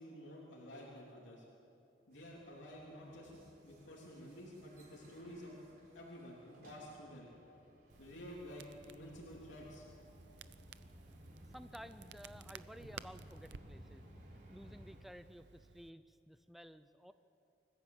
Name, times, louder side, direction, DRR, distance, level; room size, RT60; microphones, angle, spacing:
voice 1, 0.0-1.4 2.1-3.3 3.6-5.6 5.9-7.3 8.0-9.9, equal, 90° left, -4 dB, 3.5 m, -51 dB
sound 1, 2.1-15.0, equal, 50° right, 4.1 m, -59 dB
Crackle, 7.9-15.9, right 6 dB, 70° right, 0.6 m, -57 dB
voice 2, 11.4-14.1 14.5-17.1, equal, ahead, 11 dB, 0.4 m, -54 dB
26.0 x 14.5 x 8.0 m, 2.7 s
head